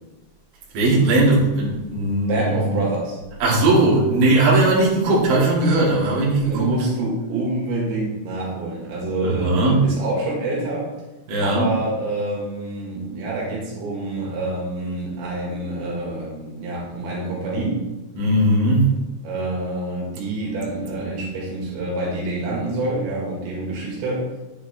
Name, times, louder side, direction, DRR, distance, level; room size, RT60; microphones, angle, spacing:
voice 1, 0.7-2.8 3.4-6.7 9.2-9.9 11.3-11.7 18.2-19.0, right 2 dB, 55° right, -5 dB, 3.5 m, -18 dB
voice 2, 2.3-3.2 6.5-10.9 11.4-17.9 19.2-24.3, right 2 dB, 80° right, -3 dB, 4.2 m, -27 dB
9.2 x 7.9 x 3.4 m, 1.1 s
omnidirectional pair, 5.2 m